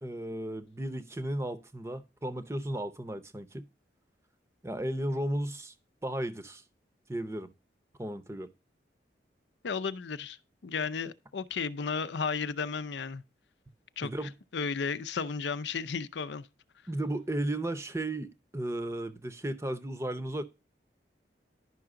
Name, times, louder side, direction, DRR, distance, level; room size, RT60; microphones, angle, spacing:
voice 1, 0.0-3.7 4.6-5.7 6.0-6.6 7.1-7.5 8.0-8.5 14.0-14.3 16.9-20.4, right 1 dB, 15° right, 0.7 m, -34 dB
voice 2, 9.6-10.4 10.6-13.2 14.0-14.1 14.5-16.5, left 5 dB, 80° left, 0.5 m, -33 dB
11.0 x 5.7 x 3.7 m
head